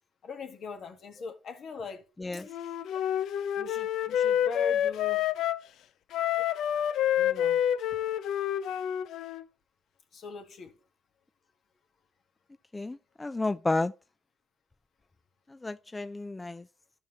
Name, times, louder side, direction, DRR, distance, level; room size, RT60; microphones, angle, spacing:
voice 1, 0.2-2.0 2.3-2.4 3.6-5.3 7.2-7.6 10.1-10.8, left 4 dB, 60° left, 1.8 m, -41 dB
Wind instrument woodwind instrument, 2.5-5.6 6.1-9.4, left 10 dB, 80° left, 0.5 m, -28 dB
voice 2, 12.7-13.9 15.6-16.6, left 2 dB, 20° left, 0.4 m, -31 dB
13.5 x 5.6 x 3.2 m
cardioid pair, 90°, 0 cm